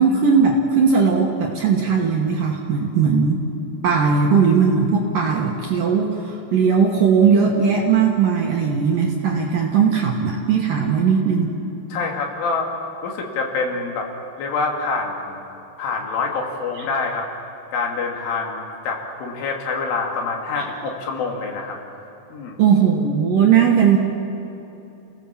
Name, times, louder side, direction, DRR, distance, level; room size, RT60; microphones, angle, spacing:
voice 1, 0.0-3.4 3.8-11.5 16.8-16.9 22.6-24.0, right 6 dB, 65° right, 0 dB, 2.3 m, -18 dB
voice 2, 11.9-12.7 13.0-14.1 14.4-15.4 15.8-17.3 17.7-21.8 22.3-22.6, left 4 dB, 75° left, 1 dB, 4.8 m, -26 dB
30.0 x 17.0 x 7.4 m, 2.9 s
omnidirectional pair, 5.7 m